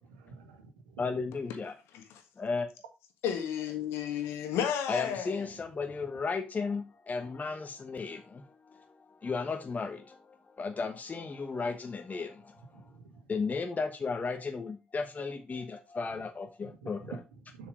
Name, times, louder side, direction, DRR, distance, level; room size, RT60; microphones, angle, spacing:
voice 1, 0.0-1.2 12.7-13.3 16.6-17.7, right 5 dB, 85° right, 1.3 m, -49 dB
voice 2, 1.0-1.8 2.4-2.7 4.9-12.9 13.3-17.2, left 4 dB, 35° left, 1.2 m, -35 dB
voice 3, 3.2-5.4, left 9 dB, 70° left, 1.5 m, -32 dB
7.1 x 4.8 x 4.8 m
hypercardioid pair, 45°, 4 cm